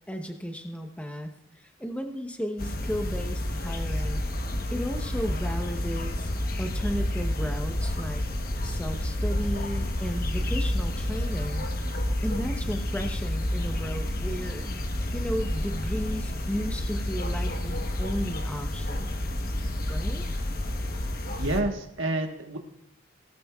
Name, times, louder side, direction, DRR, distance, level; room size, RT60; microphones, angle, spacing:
voice 1, 0.1-1.3 1.6-4.2 4.7-6.3 6.6-8.2 8.6-11.7 12.2-14.7 15.1-19.2 19.9-20.3, equal, 5° left, 5 dB, 0.9 m, -34 dB
sound 1, 2.6-21.6, left 1 dB, 45° left, 1.1 m, -30 dB
voice 2, 21.4-22.6, right 2 dB, 90° right, 3 dB, 1.4 m, -28 dB
18.0 x 13.0 x 2.4 m, 0.81 s
head